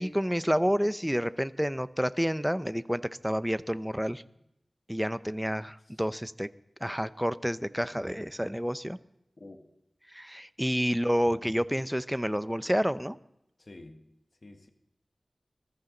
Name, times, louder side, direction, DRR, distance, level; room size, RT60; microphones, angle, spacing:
voice 1, 0.0-4.2 4.9-6.5 6.8-9.0 10.1-13.2, equal, 5° right, 15 dB, 0.6 m, -29 dB
voice 2, 9.4-9.7 11.3-11.5 13.6-14.1 14.4-14.7, left 2 dB, 50° left, 6 dB, 1.6 m, -50 dB
20.5 x 14.0 x 3.9 m, 0.81 s
wide cardioid pair, 55°, 0 cm